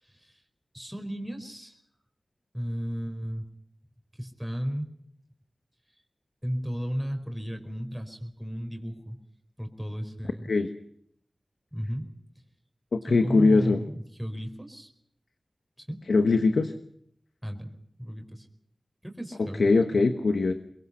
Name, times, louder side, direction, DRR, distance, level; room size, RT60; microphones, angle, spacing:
voice 1, 0.0-0.4 0.7-1.8 2.5-3.5 4.1-4.9 6.4-9.2 9.6-10.5 11.7-12.1 13.0-14.9 15.8-16.0 17.4-18.5 19.0-20.1, equal, ahead, 4 dB, 4.7 m, -34 dB
voice 2, 12.9-13.8 16.1-16.7 19.4-20.5, left 3 dB, 85° left, 8 dB, 1.3 m, -22 dB
24.0 x 21.5 x 5.6 m, 0.71 s
cardioid pair, 45°, 0 cm